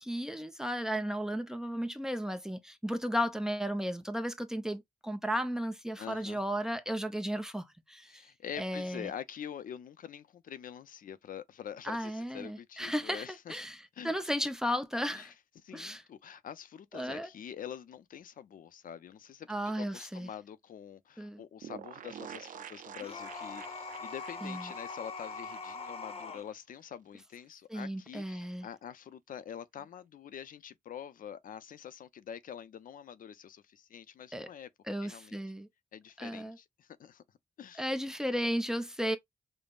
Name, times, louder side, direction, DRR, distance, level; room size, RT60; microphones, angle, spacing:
voice 1, 0.0-8.2 8.6-9.1 11.8-15.3 15.7-16.0 16.9-17.3 19.5-20.3 21.2-21.4 24.4-24.7 27.7-28.7 34.3-34.5 34.9-35.7 36.2-36.6 37.8-39.2, equal, 5° right, 0.4 m, -34 dB
voice 2, 6.0-6.4 8.1-13.6 13.9-14.1 15.1-15.3 15.6-34.7 35.0-35.4 35.9-37.2 37.6-37.9, left 9 dB, 80° left, 0.4 m, -46 dB
sound 1, 21.6-26.2 26.5-26.6 26.8-26.9, right 9 dB, 70° right, 0.4 m, -48 dB
sound 2, 23.0-26.5, left 4 dB, 45° left, 0.7 m, -42 dB
5.1 x 2.0 x 2.3 m
wide cardioid pair, 130°, 14 cm